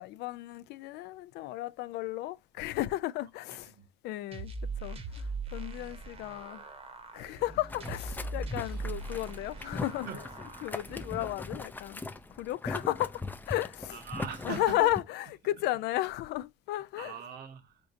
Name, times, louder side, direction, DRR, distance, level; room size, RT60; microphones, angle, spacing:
voice 1, 0.0-3.7 4.0-4.5 4.8-6.6 7.1-10.2 10.6-12.0 12.4-14.0 14.4-17.2, left 15 dB, 85° left, 0.4 m, -34 dB
voice 2, 3.5-3.9 5.8-5.9 8.7-9.2 9.6-10.2 13.9-14.9 15.9-16.1 17.0-17.8, right 6 dB, 70° right, 1.0 m, -43 dB
sound 1, 4.3-11.3, right 3 dB, 35° right, 0.9 m, -40 dB
Boiling, 7.7-15.0, left 3 dB, 10° left, 0.4 m, -40 dB
4.5 x 3.8 x 2.6 m
cardioid pair, 110°, 17 cm